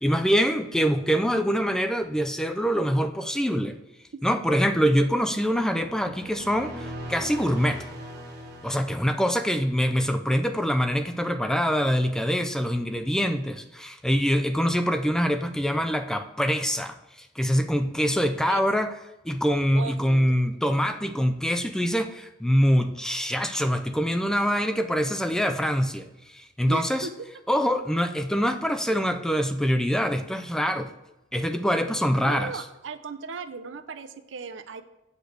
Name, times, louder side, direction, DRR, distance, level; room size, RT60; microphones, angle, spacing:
voice 1, 0.0-3.8 4.2-7.8 8.6-18.9 19.2-26.1 26.3-27.1 27.5-30.9 31.3-32.5, equal, 5° left, 8 dB, 0.3 m, -24 dB
sound 1, 5.9-9.7, equal, 60° right, 1.3 m, -40 dB
voice 2, 19.7-20.4 26.7-27.1 32.2-34.8, right 4 dB, 80° right, 10 dB, 0.6 m, -37 dB
8.0 x 3.3 x 6.4 m, 0.96 s
head